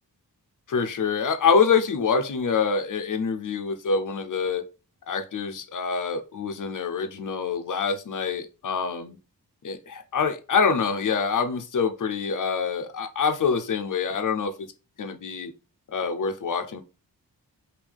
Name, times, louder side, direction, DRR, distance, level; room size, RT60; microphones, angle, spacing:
voice 1, 0.7-4.6 5.1-9.2 9.6-14.7 15.0-15.5 15.9-16.8, left 5 dB, 55° left, 0.7 m, -25 dB
5.3 x 2.7 x 3.4 m
wide cardioid pair, 120°, 38 cm